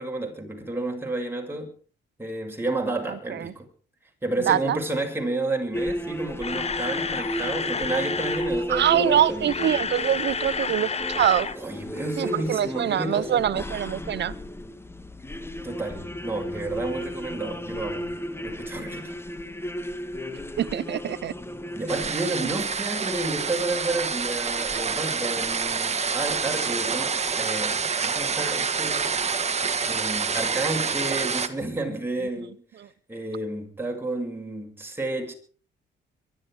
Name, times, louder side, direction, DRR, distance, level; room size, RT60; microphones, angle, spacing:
voice 1, 0.0-1.7 2.2-3.7 4.2-9.5 11.6-13.4 15.6-18.1 18.4-19.1 21.7-29.1 29.9-32.5 33.1-35.3, right 2 dB, 10° right, 6.6 m, -31 dB
voice 2, 3.1-3.5 4.5-4.8 8.7-11.5 12.2-14.3 20.6-21.3, right 10 dB, 60° right, 1.0 m, -24 dB
sound 1, 5.7-22.1, equal, 10° left, 1.6 m, -34 dB
Camera, 6.1-8.5 9.3-11.6 11.8-12.0 12.4-12.5, left 5 dB, 30° left, 1.1 m, -30 dB
sound 2, 21.9-31.5, right 5 dB, 35° right, 1.8 m, -27 dB
23.5 x 12.5 x 5.0 m
cardioid pair, 90°, 20 cm